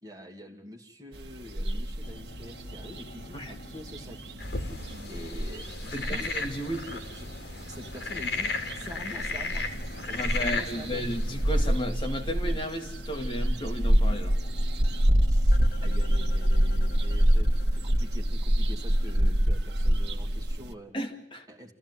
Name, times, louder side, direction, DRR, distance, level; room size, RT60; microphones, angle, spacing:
voice 1, 0.0-4.3 5.1-6.3 6.8-7.3 7.7-9.7 9.9-11.0 15.2-15.6 15.8-20.9 21.5-21.7, equal, 20° right, 3 dB, 2.5 m, -45 dB
sound 1, 1.1-20.7, equal, 70° right, 1.3 m, -27 dB
sound 2, 2.0-5.8 6.1-12.1 12.3-19.3, left 1 dB, 60° left, 2.1 m, -48 dB
sound 3, 4.4-11.8, left 4 dB, 75° left, 2.7 m, -35 dB
voice 2, 5.9-6.9 10.1-14.4 20.9-21.5, equal, 30° left, 2 dB, 2.3 m, -34 dB
28.5 x 15.0 x 9.7 m, 0.70 s
head